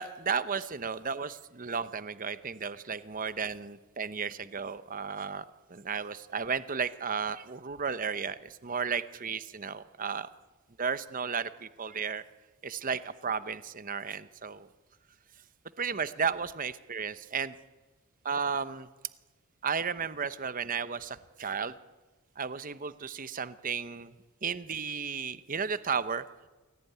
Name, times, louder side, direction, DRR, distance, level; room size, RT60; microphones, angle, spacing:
voice 1, 0.0-5.4 5.7-10.3 10.8-12.2 12.6-14.7 15.8-17.6 18.2-18.9 19.6-21.7 22.4-24.1 24.4-26.5, right 6 dB, 40° right, 13 dB, 0.9 m, -34 dB
26.5 x 17.5 x 9.3 m, 1.2 s
head